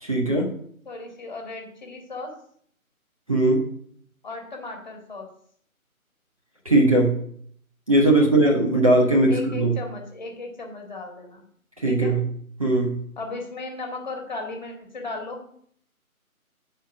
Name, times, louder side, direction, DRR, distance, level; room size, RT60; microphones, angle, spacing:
voice 1, 0.0-0.6 3.3-3.7 6.6-7.2 7.9-9.7 11.8-12.2 12.6-13.0, right 1 dB, 25° right, -2 dB, 0.9 m, -19 dB
voice 2, 0.9-2.3 4.2-5.3 8.2-8.3 9.3-11.4 11.9-12.1 13.2-15.4, left 3 dB, 30° left, 2 dB, 1.7 m, -36 dB
9.1 x 4.5 x 6.1 m, 0.62 s
figure-of-eight pair, 155°, 43 cm